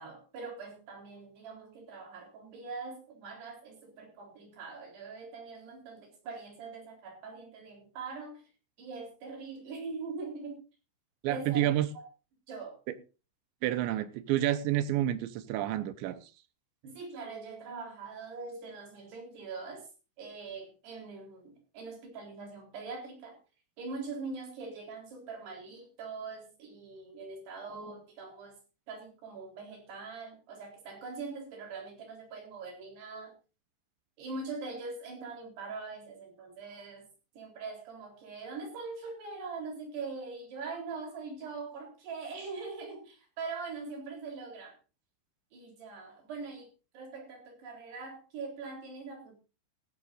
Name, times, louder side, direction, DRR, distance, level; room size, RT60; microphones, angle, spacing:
voice 1, 0.0-8.4 8.8-10.6 11.3-11.7 12.0-12.1 12.5-12.8 16.8-19.9 20.2-23.4 23.8-28.6 28.9-33.4 34.2-37.1 37.4-44.8 45.5-46.7 46.9-49.4, right 4 dB, 55° right, 5.7 m, -42 dB
voice 2, 11.2-11.9 12.9-13.0 13.6-16.3, right 13 dB, 80° right, 2.9 m, -29 dB
16.5 x 15.0 x 2.6 m
omnidirectional pair, 5.8 m